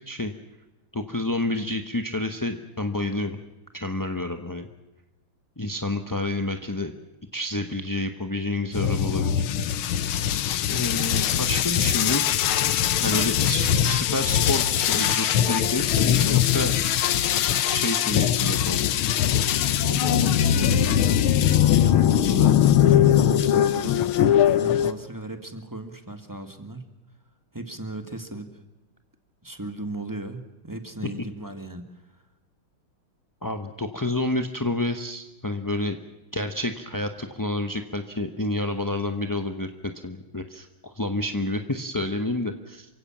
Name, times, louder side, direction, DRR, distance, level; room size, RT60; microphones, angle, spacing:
voice 1, 0.9-3.4 3.7-4.7 5.6-6.9 7.3-9.4 10.7-12.3 13.0-16.7 17.7-18.8 33.4-36.0 36.3-42.9, left 2 dB, 20° left, 6 dB, 0.6 m, -29 dB
sound 1, 8.7-24.9, left 10 dB, 80° left, 1.7 m, -21 dB
voice 2, 19.5-22.6 22.9-24.1 24.4-26.8 27.5-28.5 29.4-31.9, right 2 dB, 10° right, 7 dB, 1.8 m, -36 dB
28.0 x 16.5 x 7.3 m, 1.0 s
omnidirectional pair, 2.3 m